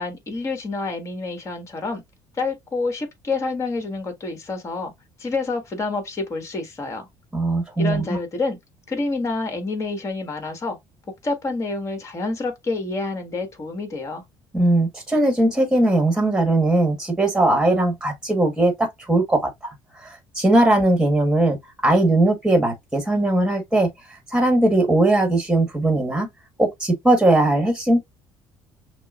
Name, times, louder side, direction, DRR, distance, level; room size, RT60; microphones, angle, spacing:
voice 1, 0.0-2.0 2.3-4.9 5.2-7.1 7.8-8.6 8.9-10.8 11.2-14.2, left 3 dB, 30° left, 1.6 m, -28 dB
voice 2, 7.3-8.2 14.5-19.7 20.0-21.6 21.8-23.9 24.3-26.3 26.6-28.0, right 2 dB, 5° right, 1.3 m, -19 dB
6.0 x 2.1 x 2.4 m
cardioid pair, 105°, 9 cm